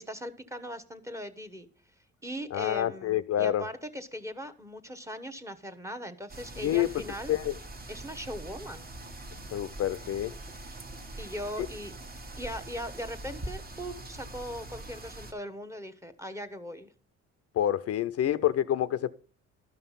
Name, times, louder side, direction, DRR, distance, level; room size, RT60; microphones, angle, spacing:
voice 1, 0.0-1.7 2.2-7.4 7.9-8.9 11.2-11.9 12.4-16.9, equal, 10° right, 0.9 m, -39 dB
voice 2, 2.5-3.7 6.6-6.9 7.3-7.6 9.5-10.3 17.5-19.1, left 12 dB, 55° left, 0.5 m, -27 dB
sound 1, 6.3-15.3, right 2 dB, 30° right, 1.3 m, -43 dB
12.0 x 5.7 x 5.6 m
cardioid pair, 100°, 30 cm